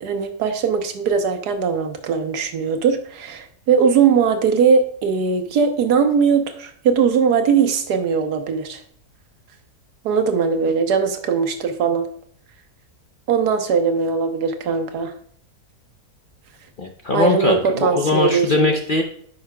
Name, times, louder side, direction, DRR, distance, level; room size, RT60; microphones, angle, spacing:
voice 1, 0.0-8.8 10.0-12.1 13.3-15.1 17.1-18.7, right 6 dB, 85° right, 6 dB, 1.5 m, -20 dB
voice 2, 16.8-19.0, left 3 dB, 50° left, 2 dB, 0.6 m, -20 dB
9.6 x 5.6 x 2.2 m, 0.62 s
omnidirectional pair, 1.7 m